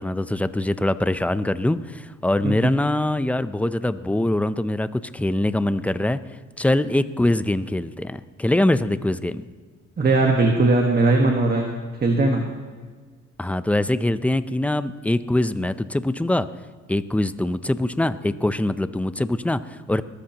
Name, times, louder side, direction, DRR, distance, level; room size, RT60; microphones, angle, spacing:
voice 1, 0.0-6.2 6.6-9.5 13.4-16.5 16.9-20.0, left 1 dB, 5° left, 13 dB, 0.5 m, -23 dB
voice 2, 10.0-11.7 12.0-12.4, right 2 dB, 30° right, 2 dB, 1.5 m, -19 dB
21.0 x 13.5 x 2.9 m, 1.5 s
cardioid pair, 90°, 30 cm